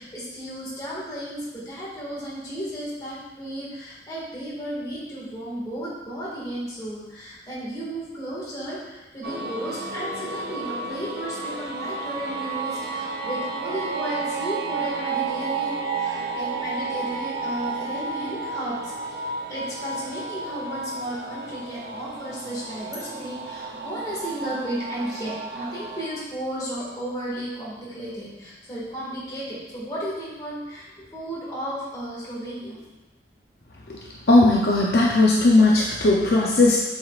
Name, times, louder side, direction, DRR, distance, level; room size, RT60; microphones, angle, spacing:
voice 1, 0.0-19.2 19.5-32.8, equal, 20° left, -7 dB, 1.8 m, -34 dB
sound 1, 9.2-26.1, right 4 dB, 60° right, 0.6 m, -32 dB
voice 2, 34.3-36.8, left 2 dB, 55° left, -3 dB, 0.6 m, -17 dB
7.5 x 5.2 x 2.4 m, 1.1 s
head